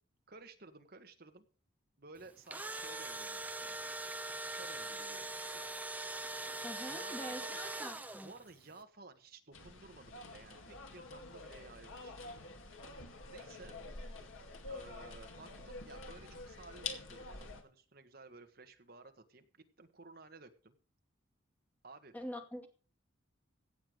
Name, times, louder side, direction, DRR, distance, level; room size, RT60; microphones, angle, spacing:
voice 1, 0.3-1.5 2.0-3.8 4.2-5.7 6.9-7.6 8.2-12.4 12.9-13.8 14.7-20.8 21.8-22.1, right 3 dB, 50° right, 7 dB, 1.6 m, -55 dB
Engine / Drill, 2.3-8.5, right 2 dB, 10° right, 0.7 m, -42 dB
voice 2, 6.6-8.3 22.1-22.7, equal, 10° left, 4 dB, 2.2 m, -45 dB
sound 1, 9.5-17.6, left 3 dB, 85° left, 2.3 m, -47 dB
16.5 x 8.0 x 5.2 m, 0.38 s
head